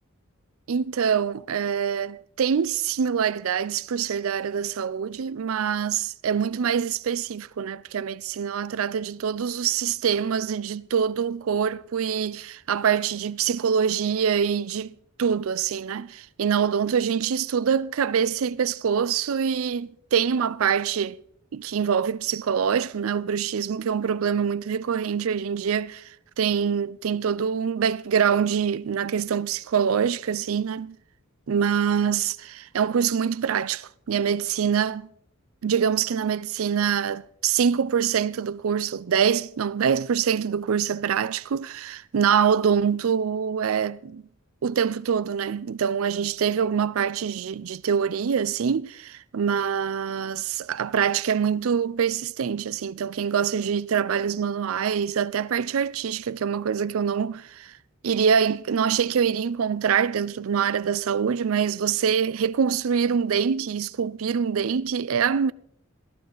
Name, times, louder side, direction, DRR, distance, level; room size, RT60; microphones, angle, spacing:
voice 1, 0.7-14.9 15.2-21.2 21.5-26.0 26.4-31.0 31.5-35.1 35.6-44.2 44.6-57.7 58.0-65.5, right 7 dB, 70° right, 0.4 m, -25 dB
16.0 x 13.5 x 3.9 m
head